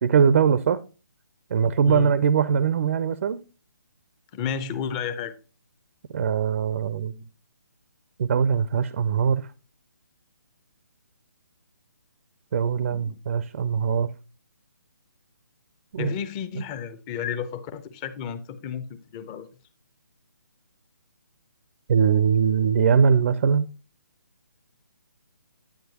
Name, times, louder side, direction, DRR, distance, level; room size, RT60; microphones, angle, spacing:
voice 1, 0.0-0.8 1.5-3.4 6.1-7.1 8.2-9.4 12.5-14.1 15.9-16.1 21.9-23.7, right 7 dB, 45° right, 0.5 m, -21 dB
voice 2, 4.3-5.3 12.8-13.2 16.0-19.5, left 7 dB, 20° left, 0.7 m, -32 dB
9.5 x 8.9 x 2.8 m
figure-of-eight pair, 145°, 10 cm